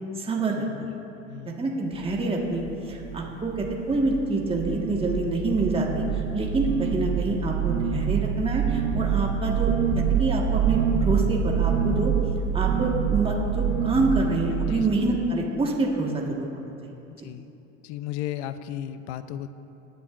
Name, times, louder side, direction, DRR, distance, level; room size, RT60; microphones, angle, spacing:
voice 1, 0.2-0.9 1.6-12.1 12.5-16.5 16.8-16.9, right 2 dB, 15° right, -2 dB, 1.6 m, -26 dB
sound 1, 1.9-2.2 2.5-3.2 3.5-4.2 4.4-14.7, right 8 dB, 50° right, 1.6 m, -26 dB
voice 2, 17.8-19.5, left 12 dB, 60° left, 12 dB, 0.7 m, -34 dB
19.0 x 10.0 x 2.6 m, 2.9 s
hypercardioid pair, 80°, 38 cm